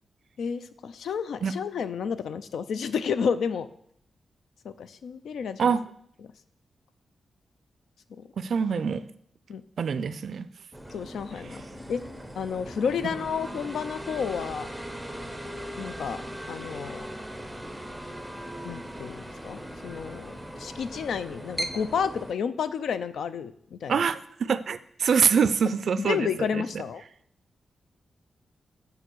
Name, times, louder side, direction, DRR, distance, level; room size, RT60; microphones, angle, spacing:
voice 1, 0.4-3.7 4.6-5.8 8.1-8.3 9.5-9.6 10.9-11.6 11.9-12.0 12.3-14.7 15.8-16.2 16.5-17.1 18.6-24.0 26.0-27.0, left 6 dB, 90° left, 13 dB, 0.4 m, -31 dB
voice 2, 8.4-9.0 9.8-10.5 11.5-11.6 23.9-26.6, right 6 dB, 55° right, 14 dB, 0.4 m, -25 dB
sound 1, 10.7-22.3, equal, ahead, 0.5 m, -39 dB
6.9 x 4.9 x 6.1 m, 0.67 s
wide cardioid pair, 175°, 0 cm